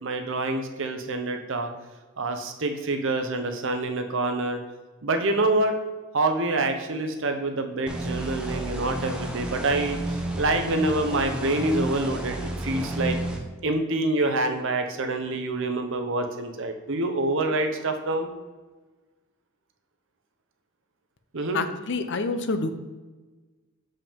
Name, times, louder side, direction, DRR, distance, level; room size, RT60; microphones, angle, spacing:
voice 1, 0.0-1.7 2.2-4.6 5.0-5.8 6.1-13.2 13.6-18.3 21.3-21.6, right 2 dB, 65° right, 6 dB, 0.9 m, -26 dB
sound 1, 7.9-13.4, right 1 dB, 5° right, 0.7 m, -31 dB
voice 2, 21.5-22.7, left 3 dB, 60° left, 9 dB, 0.6 m, -27 dB
7.0 x 5.5 x 3.6 m, 1.3 s
head